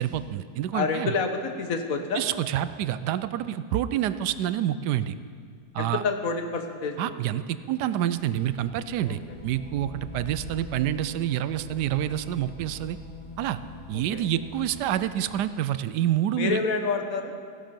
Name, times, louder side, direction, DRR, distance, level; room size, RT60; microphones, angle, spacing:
voice 1, 0.0-1.1 2.1-5.1 5.7-6.0 7.0-13.0 13.4-13.6 13.9-16.6, right 11 dB, 80° right, 13 dB, 1.2 m, -27 dB
voice 2, 0.7-2.2 5.8-7.1 9.1-9.2 14.1-14.2 16.3-17.3, left 4 dB, 60° left, 6 dB, 1.4 m, -28 dB
sound 1, 8.2-15.4, left 3 dB, 40° left, 0.4 m, -44 dB
16.0 x 11.5 x 5.3 m, 2.1 s
omnidirectional pair, 1.8 m